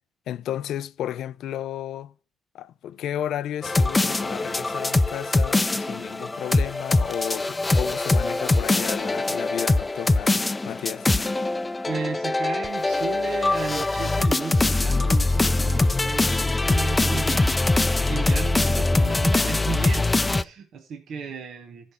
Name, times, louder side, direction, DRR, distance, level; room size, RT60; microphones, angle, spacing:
voice 1, 0.3-2.1 2.5-11.1, left 11 dB, 80° left, 0.3 m, -33 dB
sound 1, 3.6-20.4, left 2 dB, 20° left, 0.5 m, -23 dB
voice 2, 11.9-21.9, right 5 dB, 70° right, 1.2 m, -34 dB
13.5 x 5.3 x 4.2 m
cardioid pair, 90°, 0 cm